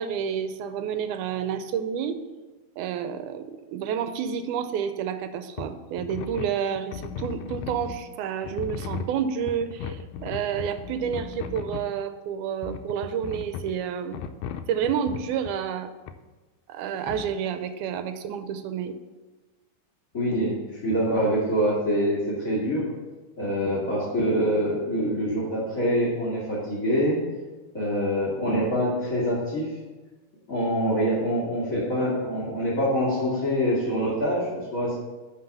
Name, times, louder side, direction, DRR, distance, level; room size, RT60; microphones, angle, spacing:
voice 1, 0.0-2.2 2.8-14.2 14.7-15.9 16.7-19.0, right 8 dB, 80° right, 10 dB, 2.0 m, -29 dB
sound 1, 5.6-5.7 6.0-8.0 8.4-11.9 12.6-13.8 14.1-15.6 16.1-16.2 17.1-17.3, left 7 dB, 80° left, 1.9 m, -36 dB
voice 2, 20.1-22.9 23.4-27.2 27.7-29.7 30.5-34.9, equal, 30° left, -6 dB, 1.9 m, -25 dB
10.5 x 4.0 x 6.9 m, 1.2 s
omnidirectional pair, 3.7 m